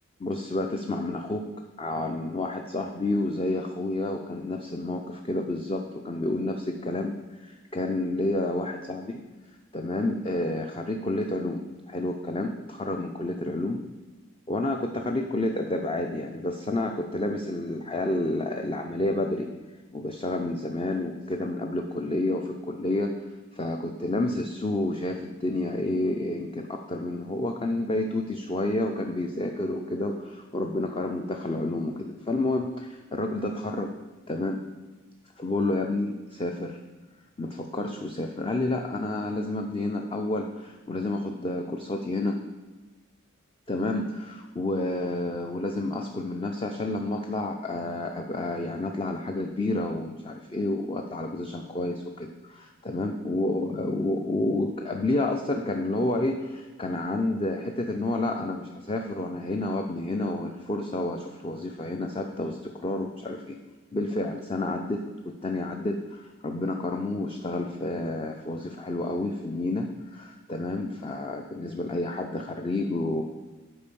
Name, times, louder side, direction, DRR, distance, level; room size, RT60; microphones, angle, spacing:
voice 1, 0.2-1.5 1.8-9.2 9.7-13.8 14.5-19.5 19.9-23.2 23.5-33.9 34.3-34.6 35.4-36.8 37.4-42.4 43.7-63.6 63.9-73.2, left 2 dB, 25° left, 3 dB, 0.5 m, -30 dB
8.7 x 4.6 x 6.9 m, 1.2 s
head